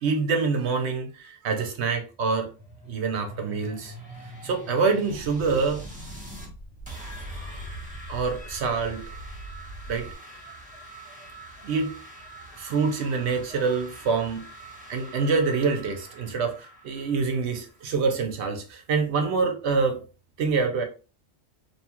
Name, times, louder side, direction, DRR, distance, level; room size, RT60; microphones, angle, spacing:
voice 1, 0.0-2.5 2.9-3.9 4.4-5.8 8.1-9.0 9.9-10.1 11.6-12.0 12.5-14.4 14.9-20.0 20.4-20.8, right 4 dB, 65° right, 0.8 m, -26 dB
sound 1, 2.1-6.5 6.9-18.4, right 1 dB, 10° right, 0.6 m, -44 dB
sound 2, 5.1-10.1, right 1 dB, 65° left, 0.9 m, -42 dB
2.9 x 2.3 x 2.8 m
omnidirectional pair, 1.3 m